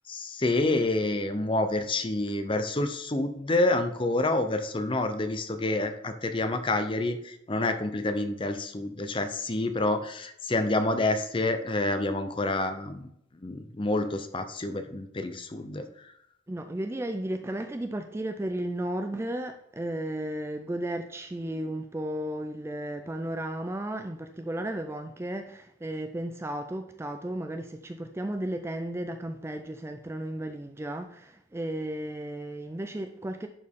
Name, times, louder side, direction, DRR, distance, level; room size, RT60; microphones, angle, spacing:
voice 1, 0.1-13.1 13.4-15.8, left 2 dB, 25° left, 0.6 m, -28 dB
voice 2, 16.5-33.5, right 1 dB, 15° right, 0.3 m, -34 dB
11.0 x 4.6 x 3.6 m
head